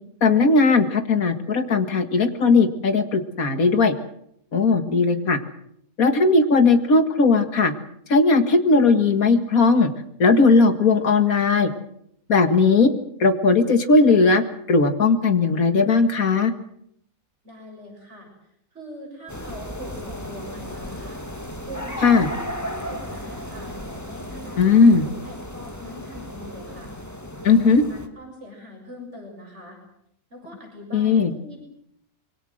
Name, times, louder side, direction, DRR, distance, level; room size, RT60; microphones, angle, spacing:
voice 1, 0.2-4.0 4.5-5.4 6.0-7.7 8.1-9.9 10.2-11.7 12.3-12.9 13.2-16.5 22.0-22.3 24.6-25.0 27.5-27.8 30.9-31.3, left 4 dB, 80° left, 8 dB, 2.4 m, -17 dB
voice 2, 17.4-18.3 18.7-29.8 30.3-31.6, left 1 dB, 55° right, 1 dB, 7.5 m, -42 dB
sound 1, 19.3-28.1, equal, 10° left, 2.0 m, -35 dB
25.5 x 23.5 x 6.5 m, 0.73 s
omnidirectional pair, 1.5 m